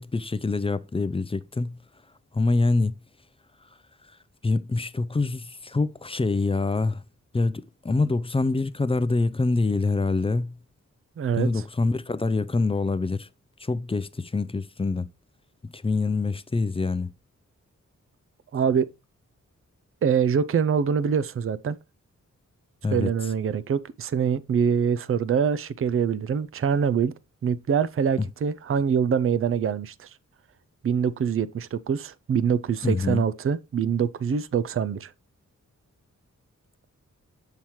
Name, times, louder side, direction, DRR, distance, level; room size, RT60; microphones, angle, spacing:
voice 1, 0.0-1.7 2.3-2.9 4.4-7.0 7.3-10.5 11.4-13.3 13.6-15.1 15.7-17.1 22.8-23.1 32.8-33.2, left 3 dB, 20° left, 0.4 m, -25 dB
voice 2, 11.2-11.5 18.5-18.9 20.0-21.8 22.9-27.1 27.4-30.1 30.8-35.1, right 7 dB, 45° right, 0.5 m, -24 dB
7.2 x 5.8 x 3.1 m
wide cardioid pair, 85°, 30 cm